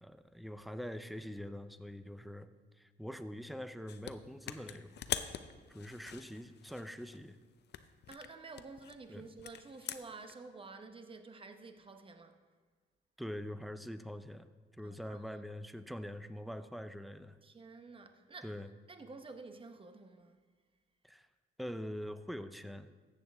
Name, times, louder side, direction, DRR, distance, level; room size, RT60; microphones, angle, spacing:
voice 1, 0.0-2.5 2.8-4.9 5.7-7.4 9.1-9.3 13.2-14.5 14.8-17.4 18.4-18.7 21.0-21.3 21.6-22.9, equal, ahead, 0.5 m, -44 dB
sound 1, 3.9-4.1 4.5-7.3 7.7-10.3, left 10 dB, 60° left, 0.5 m, -43 dB
voice 2, 8.1-12.4 14.8-15.2 17.4-18.5 18.9-20.4, right 3 dB, 25° right, 0.9 m, -50 dB
13.5 x 8.3 x 3.5 m
cardioid pair, 90°, 20 cm